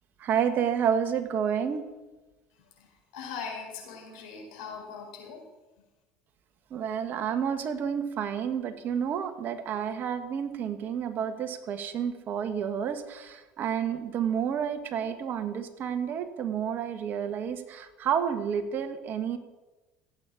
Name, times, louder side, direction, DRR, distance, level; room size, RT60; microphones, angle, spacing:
voice 1, 0.2-1.8 6.7-19.4, right 8 dB, 50° right, 10 dB, 1.6 m, -30 dB
voice 2, 2.5-5.5, left 6 dB, 70° left, 0 dB, 4.6 m, -41 dB
16.0 x 8.6 x 7.3 m, 1.1 s
hypercardioid pair, 65°, 4 cm